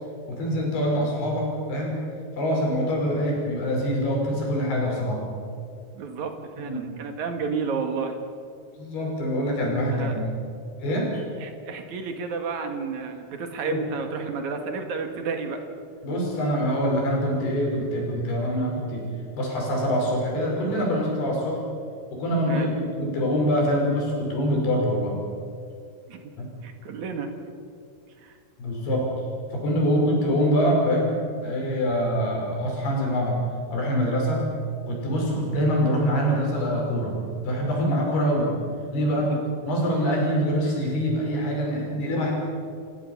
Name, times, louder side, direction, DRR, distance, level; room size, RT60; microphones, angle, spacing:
voice 1, 0.3-2.0 2.4-5.2 6.7-6.9 8.8-10.3 10.8-11.2 13.7-13.8 16.0-19.0 19.4-21.6 22.1-25.1 26.4-26.5 28.6-29.1 29.5-31.1 31.4-33.4 33.7-34.5 34.9-37.2 37.4-38.5 38.9-39.3 39.6-42.3, equal, 70° left, -1 dB, 7.5 m, -24 dB
voice 2, 5.9-8.2 9.9-10.2 11.4-15.6 22.5-22.7 26.1-26.2 26.6-27.3 28.2-28.4 36.3-36.4 39.2-39.4, right 5 dB, 55° right, 5 dB, 2.8 m, -31 dB
29.0 x 16.0 x 7.2 m, 2.3 s
omnidirectional pair, 4.7 m